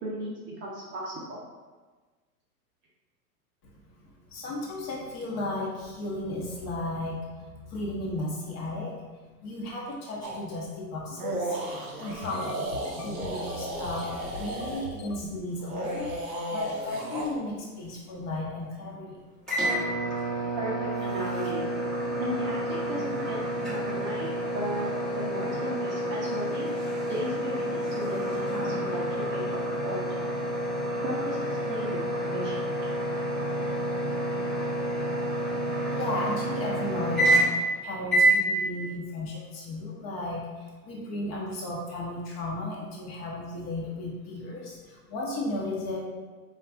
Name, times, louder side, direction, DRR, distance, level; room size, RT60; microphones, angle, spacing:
voice 1, 0.0-1.4 20.5-21.7 22.2-26.7 27.1-30.3 31.0-32.0 32.3-32.9, equal, 25° right, -5 dB, 0.7 m, -36 dB
voice 2, 4.0-8.9 9.4-11.7 12.0-12.6 12.9-19.2 35.9-46.0, left 1 dB, 30° left, -3 dB, 1.1 m, -34 dB
sound 1, 10.2-10.4 11.1-14.9 15.6-17.3, right 1 dB, 55° right, 1.4 m, -34 dB
sound 2, 12.1-15.4 15.8-16.3 16.6-16.9 17.2-17.5 18.1-18.4, left 4 dB, 75° left, 0.7 m, -43 dB
sound 3, 19.5-37.7 38.1-38.4, right 1 dB, ahead, 1.3 m, -28 dB
7.5 x 2.5 x 2.5 m, 1.4 s
hypercardioid pair, 130°, 48 cm